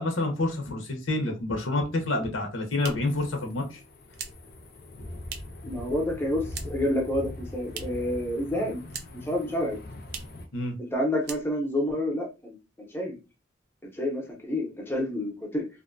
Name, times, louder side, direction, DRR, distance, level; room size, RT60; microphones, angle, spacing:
voice 1, 0.0-3.8 10.5-10.7, left 2 dB, 90° left, 0.8 m, -28 dB
sound 1, 2.3-5.7 6.0-7.0 7.2-8.1 8.4-9.3 9.6-9.7 10.0-10.4 10.8-10.9 11.2-11.8, right 7 dB, 55° right, 0.4 m, -42 dB
sound 2, 3.0-10.5, left 1 dB, 50° left, 0.5 m, -42 dB
voice 2, 5.6-8.8 9.2-9.8 10.8-13.2 13.8-15.7, left 1 dB, 10° left, 0.7 m, -29 dB
2.6 x 2.1 x 2.5 m
head